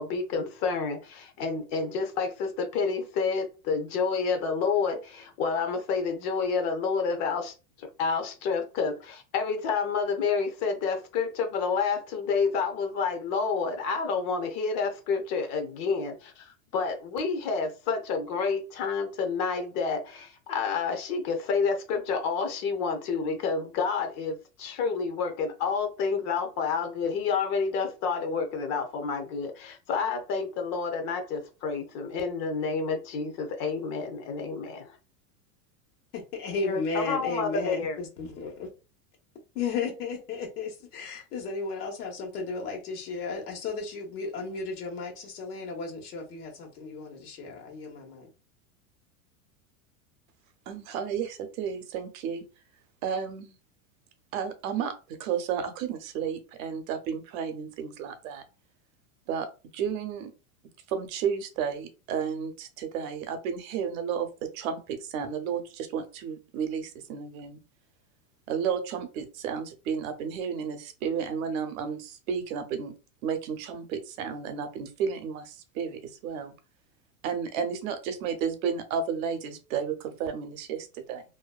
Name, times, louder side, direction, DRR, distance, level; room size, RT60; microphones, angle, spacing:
voice 1, 0.0-35.0 36.7-38.0, left 5 dB, 40° left, 0.6 m, -29 dB
voice 2, 36.1-38.7 39.5-48.3, left 4 dB, 85° left, 1.2 m, -34 dB
voice 3, 50.7-52.4 53.0-53.5 54.3-54.9 55.2-58.4 59.3-59.5 59.7-60.3 60.9-64.3 64.5-67.6 68.5-72.9 73.2-76.5 77.2-81.2, right 7 dB, 65° right, 0.7 m, -32 dB
2.6 x 2.2 x 2.3 m
supercardioid pair, 140°, 45 cm